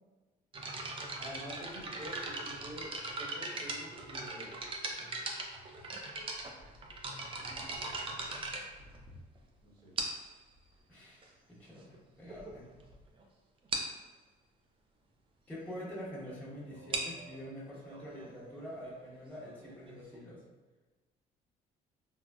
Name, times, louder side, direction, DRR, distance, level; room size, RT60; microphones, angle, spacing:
sound 1, 0.5-9.4 10.0-10.4 11.2-11.3 11.9-12.0 12.3-12.5 12.8-12.9 13.2-13.3 13.7-14.0 16.7-20.2, right 2 dB, 30° right, 0.4 m, -40 dB
voice 1, 1.2-2.9 3.2-4.5 7.1-7.6 9.6-9.9, equal, 70° right, -4 dB, 1.0 m, -48 dB
voice 2, 10.9-12.7 15.5-20.4, equal, 10° left, -9 dB, 1.1 m, -46 dB
3.8 x 2.1 x 2.3 m, 1.3 s
cardioid pair, 110°, 17 cm